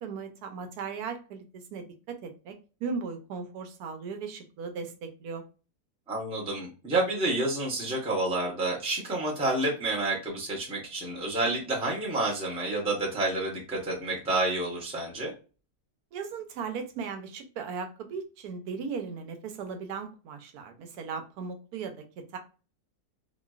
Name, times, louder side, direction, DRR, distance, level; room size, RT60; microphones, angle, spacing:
voice 1, 0.0-2.5 2.8-5.4 16.1-22.0 22.3-22.4, right 5 dB, 85° right, 5 dB, 1.1 m, -37 dB
voice 2, 6.1-15.3, right 2 dB, 5° right, -4 dB, 0.6 m, -29 dB
2.9 x 2.5 x 2.3 m, 0.34 s
omnidirectional pair, 1.6 m